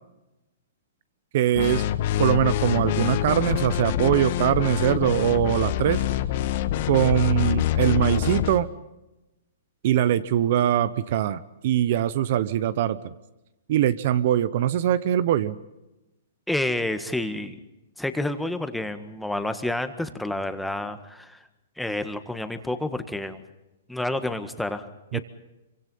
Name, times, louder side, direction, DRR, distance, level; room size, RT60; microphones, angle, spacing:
voice 1, 1.3-1.8 2.2-6.0 6.9-8.7 9.8-13.1 13.7-15.6 25.1-25.2, right 11 dB, 55° right, 16 dB, 1.0 m, -22 dB
sound 1, 1.6-8.6, left 12 dB, 50° left, 1.5 m, -25 dB
voice 2, 16.5-17.6 18.0-21.4 21.8-23.4 23.9-24.9 25.1-25.2, left 1 dB, 5° left, 9 dB, 1.6 m, -29 dB
25.5 x 24.5 x 5.6 m, 0.97 s
hypercardioid pair, 145°, 0 cm